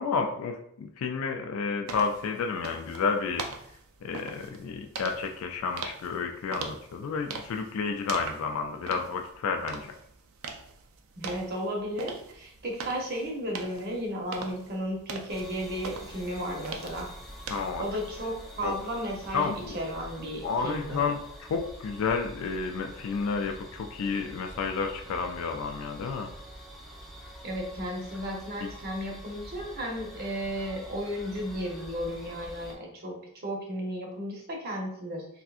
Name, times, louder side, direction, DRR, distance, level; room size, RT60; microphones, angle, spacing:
voice 1, 0.0-3.4 4.0-9.9 17.5-17.8 18.6-18.7 19.3-19.8 20.4-26.3 28.6-28.7, left 5 dB, 75° left, 4 dB, 0.3 m, -31 dB
sound 1, 1.9-17.7, right 4 dB, 70° right, 0.4 m, -42 dB
voice 2, 11.2-17.1 17.8-21.0 27.4-35.3, equal, 45° right, 0 dB, 0.7 m, -34 dB
sound 2, 15.3-32.7, equal, ahead, 0.4 m, -46 dB
3.4 x 2.6 x 2.4 m, 0.72 s
head